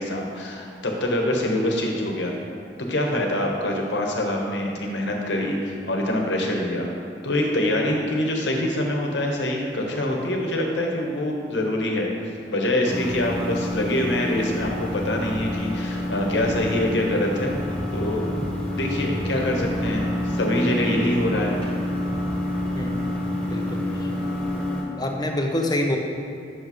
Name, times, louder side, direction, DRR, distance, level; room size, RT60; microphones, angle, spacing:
voice 1, 0.0-2.4 2.9-6.9 7.2-12.1 12.5-17.6 17.9-18.2 18.7-21.6, left 1 dB, 80° left, 0 dB, 1.0 m, -25 dB
sound 1, 12.8-24.8, left 1 dB, 10° left, 1.1 m, -28 dB
voice 2, 23.4-23.8 25.0-26.0, left 1 dB, 25° left, 2 dB, 0.6 m, -26 dB
8.2 x 6.4 x 3.1 m, 2.3 s
head